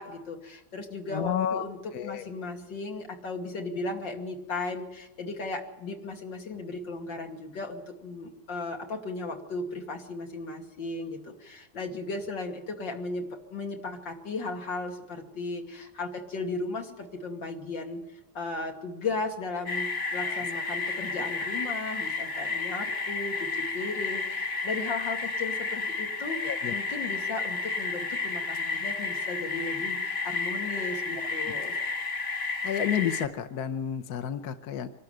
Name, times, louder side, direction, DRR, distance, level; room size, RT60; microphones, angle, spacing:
voice 1, 0.0-1.8 2.0-18.0 18.3-31.7, left 3 dB, 80° left, 3 dB, 3.2 m, -36 dB
voice 2, 1.1-1.7 1.9-2.3 20.2-20.4 26.4-26.7 31.2-31.3 32.6-34.9, left 9 dB, 60° left, 10 dB, 1.3 m, -31 dB
sound 1, 19.7-33.3, left 4 dB, 35° left, 1.4 m, -32 dB
24.5 x 12.5 x 9.3 m, 0.94 s
omnidirectional pair, 2.0 m